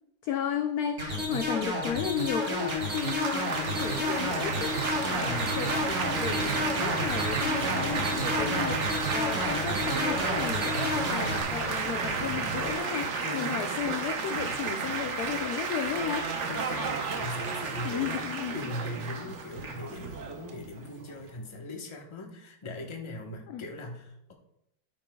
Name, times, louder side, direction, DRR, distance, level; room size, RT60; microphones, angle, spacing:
voice 1, 0.2-16.5 17.8-18.7 23.5-23.6, left 9 dB, 75° left, 7 dB, 0.8 m, -34 dB
sound 1, 1.0-11.4, left 1 dB, 40° right, 2.8 m, -31 dB
Laughter / Applause / Chatter, 2.2-21.3, right 5 dB, 55° right, 0.8 m, -32 dB
sound 2, 3.6-12.8, right 3 dB, 80° right, 1.9 m, -38 dB
voice 2, 4.9-5.6 8.4-8.8 13.0-13.6 16.5-18.3 18.5-24.3, left 2 dB, 20° left, 1 dB, 0.7 m, -40 dB
13.0 x 9.0 x 2.3 m, 0.83 s
omnidirectional pair, 2.2 m